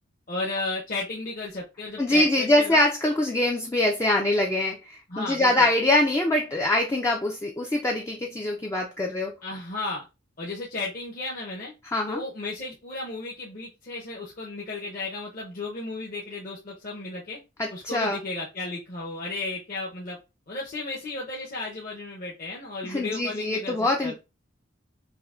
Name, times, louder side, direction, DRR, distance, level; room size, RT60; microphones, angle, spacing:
voice 1, 0.3-2.8 5.1-5.7 9.4-10.0 10.4-11.7 12.1-17.4 17.7-20.2 20.5-24.1, left 3 dB, 45° left, 0.7 m, -34 dB
voice 2, 2.0-9.4 11.9-12.2 17.6-18.2 22.8-24.1, left 1 dB, 15° left, 0.3 m, -24 dB
5.5 x 2.1 x 2.3 m
head